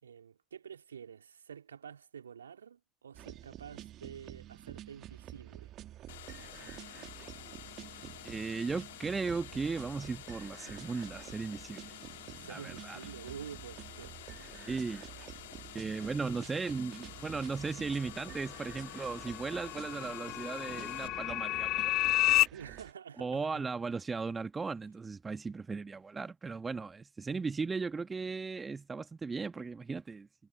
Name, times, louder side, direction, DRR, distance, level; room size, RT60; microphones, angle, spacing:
voice 1, 0.0-5.7 12.3-14.1 22.5-23.7 24.6-24.7, right 7 dB, 80° right, 3.1 m, -48 dB
sound 1, 3.1-22.9, right 13 dB, 45° right, 1.6 m, -49 dB
sound 2, 6.1-21.1, left 15 dB, 70° left, 2.4 m, -50 dB
voice 2, 8.2-11.9 12.5-13.0 14.5-15.1 15.7-21.8 23.2-30.3, right 4 dB, 20° right, 1.4 m, -37 dB
Metallic Riser, 18.1-22.5, left 17 dB, 50° left, 0.5 m, -31 dB
figure-of-eight pair, 65°, 0 cm